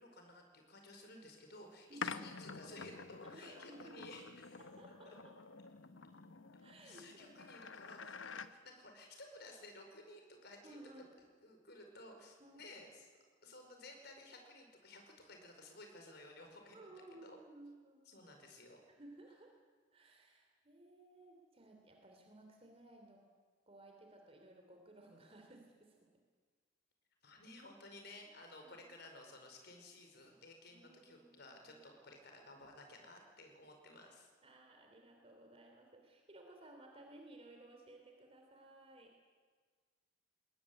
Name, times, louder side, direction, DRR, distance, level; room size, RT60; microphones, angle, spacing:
voice 1, 0.0-4.6 5.0-5.2 6.8-11.0 11.4-13.1 13.4-16.9 17.2-17.4 18.1-18.8 27.2-34.3, left 2 dB, 60° left, 4 dB, 5.1 m, -55 dB
voice 2, 1.9-2.2 3.2-4.0 4.6-5.3 6.6-7.4 10.6-11.1 12.4-12.6 16.7-18.0 18.9-19.6 19.9-23.2 23.7-26.1 28.6-28.9 30.7-31.8 34.4-39.1, right 2 dB, 30° right, 2 dB, 3.1 m, -58 dB
sound 1, 2.0-8.5, left 5 dB, 90° left, 1.0 m, -48 dB
21.5 x 19.0 x 9.8 m, 1.5 s
head